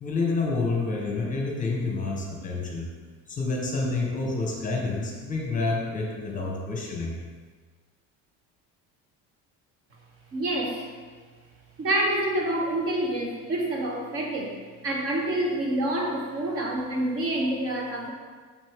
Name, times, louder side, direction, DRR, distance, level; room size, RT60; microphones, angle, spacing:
voice 1, 0.0-2.9 3.3-7.2, left 3 dB, 25° left, 0 dB, 1.0 m, -28 dB
voice 2, 10.3-10.9 11.8-14.6 14.8-18.1, right 1 dB, 45° right, 0 dB, 1.1 m, -27 dB
6.6 x 6.2 x 3.6 m, 1.5 s
cardioid pair, 155°, 34 cm